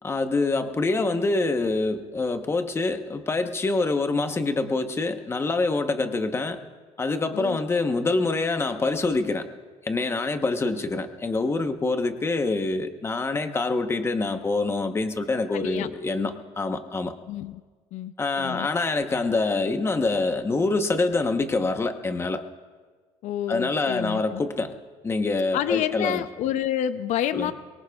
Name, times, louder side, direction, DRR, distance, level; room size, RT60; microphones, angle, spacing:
voice 1, 0.0-6.6 7.0-9.5 9.8-17.1 18.2-22.4 23.5-24.7 25.0-26.2 27.3-27.5, left 3 dB, 20° left, 7 dB, 0.9 m, -25 dB
voice 2, 15.5-15.9 17.3-17.6 17.9-18.7 23.2-24.4 25.5-27.5, left 11 dB, 65° left, 12 dB, 0.5 m, -29 dB
24.0 x 22.5 x 2.3 m, 1.4 s
cardioid pair, 135°, 13 cm